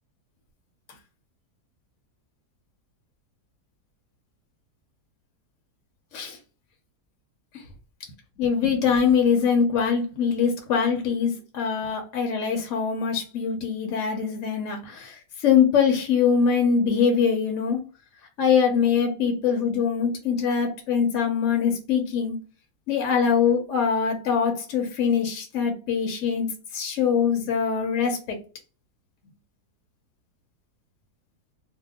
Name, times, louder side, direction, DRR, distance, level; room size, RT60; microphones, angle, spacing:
voice 1, 8.4-17.8 18.4-22.4 22.9-28.4, left 6 dB, 60° left, 0.9 m, -23 dB
2.7 x 2.2 x 3.5 m
omnidirectional pair, 1.7 m